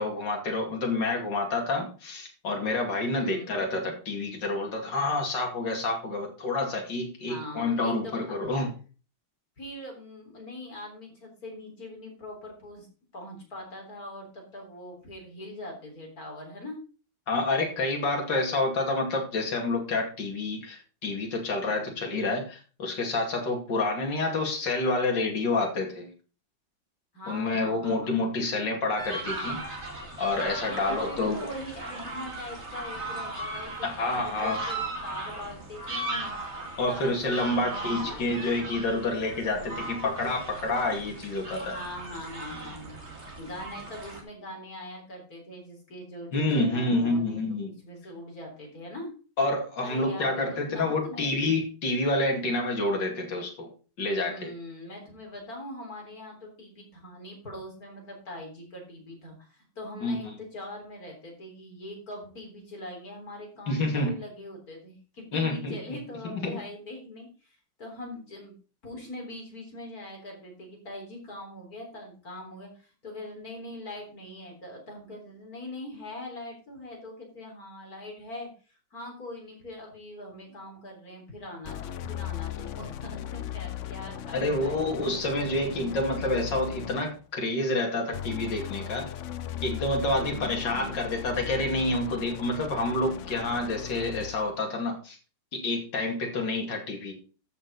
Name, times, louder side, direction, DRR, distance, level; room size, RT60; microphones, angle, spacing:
voice 1, 0.0-8.7 17.3-26.1 27.3-29.6 30.2-31.5 33.8-34.6 36.8-41.7 46.3-47.7 49.4-53.7 54.0-54.5 60.0-60.2 63.7-64.2 65.3-65.8 66.2-66.6 84.3-89.1 89.6-95.2 95.5-97.1, left 2 dB, 65° left, 1 dB, 3.2 m, -28 dB
voice 2, 3.1-3.6 7.3-8.6 9.6-12.9 13.1-16.8 21.7-22.0 27.1-28.4 30.6-36.3 36.9-38.2 39.5-39.9 41.7-43.0 43.4-47.4 47.6-49.1 49.8-51.3 54.2-68.5 68.8-84.9 90.1-90.7, left 1 dB, 50° left, 1 dB, 4.2 m, -42 dB
sound 1, 29.0-44.2, right 2 dB, 35° right, 2.7 m, -37 dB
sound 2, 81.6-87.3 88.1-94.5, left 11 dB, 80° left, 0.6 m, -38 dB
13.0 x 6.6 x 4.1 m, 0.36 s
omnidirectional pair, 2.1 m